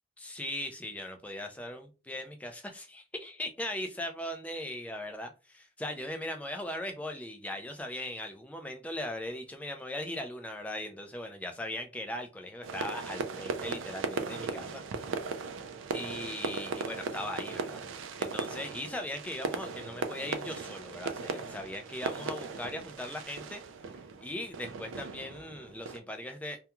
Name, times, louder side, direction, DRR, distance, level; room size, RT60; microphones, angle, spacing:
voice 1, 0.2-14.8 15.9-17.8 18.2-23.6 24.2-26.6, left 1 dB, 5° left, 5 dB, 0.3 m, -39 dB
sound 1, 12.6-26.0, right 4 dB, 90° right, 0.4 m, -38 dB
2.3 x 2.2 x 2.9 m, 0.31 s
head